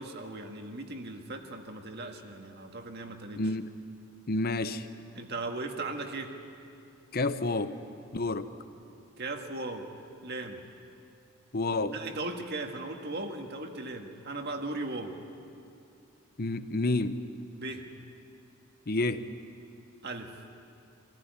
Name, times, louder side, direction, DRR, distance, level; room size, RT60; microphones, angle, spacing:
voice 1, 0.0-3.4 5.1-6.3 9.2-9.9 10.2-10.6 11.9-15.2 17.5-17.8 20.0-20.3, right 2 dB, 50° right, 4 dB, 1.7 m, -37 dB
voice 2, 3.4-3.7 4.3-4.9 7.1-7.7 8.1-8.5 11.5-12.0 16.4-17.2 18.9-19.3, left 2 dB, 45° left, 11 dB, 0.8 m, -29 dB
24.5 x 15.0 x 9.5 m, 2.6 s
head